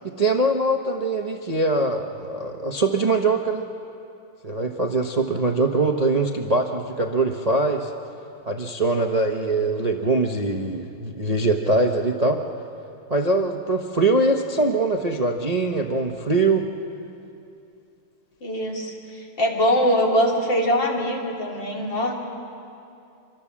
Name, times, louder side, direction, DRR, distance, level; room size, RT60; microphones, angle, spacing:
voice 1, 0.0-3.6 4.4-7.9 8.5-12.4 13.1-16.7, right 2 dB, 30° right, 2 dB, 0.8 m, -22 dB
voice 2, 18.4-22.1, equal, 55° left, -1 dB, 3.8 m, -22 dB
25.5 x 25.0 x 7.4 m, 2.7 s
omnidirectional pair, 2.4 m